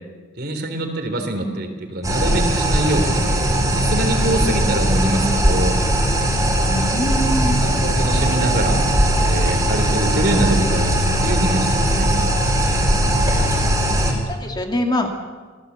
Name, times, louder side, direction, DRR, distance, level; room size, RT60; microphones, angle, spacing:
voice 1, 0.4-5.8 7.6-8.8 9.2-10.9 11.2-12.1, right 1 dB, 50° right, 5 dB, 3.7 m, -24 dB
sound 1, 2.0-14.1, right 1 dB, 15° right, 4.6 m, -19 dB
voice 2, 6.9-7.7 14.3-15.1, left 1 dB, 20° left, 3 dB, 2.3 m, -23 dB
27.5 x 18.0 x 8.3 m, 1.4 s
head